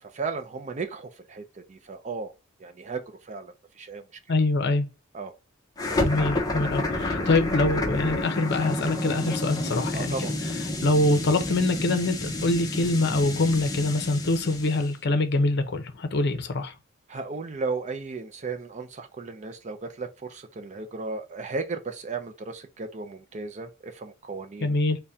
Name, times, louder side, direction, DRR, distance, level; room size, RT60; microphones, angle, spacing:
voice 1, 0.0-2.3 2.6-4.0 5.1-5.3 7.1-7.3 9.6-10.3 17.1-24.8, right 4 dB, 35° right, 0.5 m, -35 dB
voice 2, 4.3-4.9 6.0-10.2 10.8-16.7 24.6-25.0, left 2 dB, 55° left, 0.7 m, -24 dB
sound 1, 5.8-14.9, left 2 dB, 20° left, 0.7 m, -29 dB
4.1 x 2.2 x 3.4 m
head